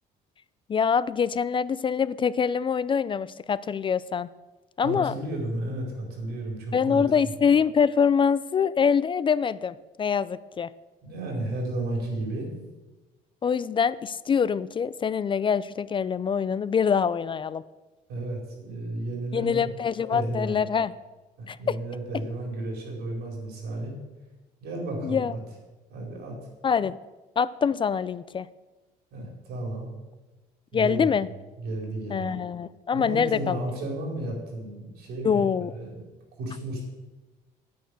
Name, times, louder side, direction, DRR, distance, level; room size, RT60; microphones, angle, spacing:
voice 1, 0.7-4.3 4.8-5.1 6.7-10.7 13.4-17.6 19.3-20.9 21.5-21.8 25.0-25.3 26.6-27.0 27.4-28.5 30.7-31.3 32.1-33.6 35.2-35.7, left 6 dB, 30° left, 17 dB, 0.4 m, -24 dB
voice 2, 4.8-7.3 11.0-12.5 18.1-19.7 20.1-20.6 21.4-24.0 24.6-25.4 25.9-26.4 29.1-29.9 30.7-31.3 31.6-32.4 32.9-35.4 35.7-36.0 36.4-36.9, right 1 dB, 80° right, -1 dB, 4.7 m, -33 dB
9.3 x 9.2 x 6.7 m, 1.2 s
cardioid pair, 110°, 17 cm